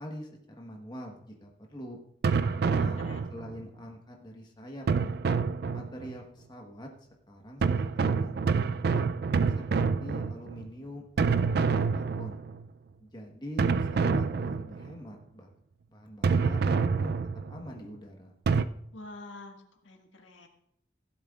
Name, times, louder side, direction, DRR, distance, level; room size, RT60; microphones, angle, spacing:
voice 1, 0.0-2.0 2.6-5.2 5.7-6.9 7.3-9.1 9.5-12.4 13.0-15.5 15.9-17.2 17.5-18.3, equal, 25° left, 0 dB, 1.2 m, -44 dB
sound 1, 2.2-3.6 4.9-6.2 7.6-10.7 11.2-12.7 13.6-15.0 16.2-17.6 18.5-18.6, right 5 dB, 55° right, 0.4 m, -27 dB
voice 2, 2.4-3.3 18.9-20.5, left 2 dB, 80° left, 3 dB, 1.6 m, -48 dB
16.0 x 11.5 x 2.4 m, 0.75 s
head